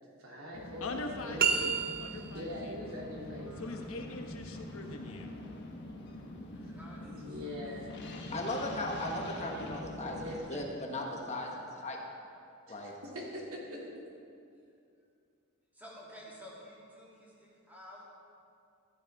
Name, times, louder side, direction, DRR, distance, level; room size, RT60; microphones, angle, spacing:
voice 1, 0.2-0.9 1.2-1.4 2.3-3.8 7.0-7.9 10.1-10.7 12.7-13.9, left 1 dB, 80° right, -3 dB, 2.7 m, -42 dB
sound 1, 0.5-10.4, left 1 dB, 50° left, 1.4 m, -45 dB
voice 2, 0.8-1.7 2.0-2.7 3.6-5.3, left 2 dB, 70° left, 3 dB, 1.1 m, -42 dB
sound 2, 1.4-2.5, right 6 dB, 45° right, 0.7 m, -30 dB
voice 3, 3.4-4.2 4.5-4.6 6.5-7.7 15.7-18.1, equal, 10° right, -7 dB, 2.8 m, -52 dB
voice 4, 8.3-10.2 10.5-12.0 12.7-12.9, left 1 dB, 30° left, 0 dB, 1.3 m, -37 dB
15.0 x 12.0 x 3.6 m, 2.5 s
head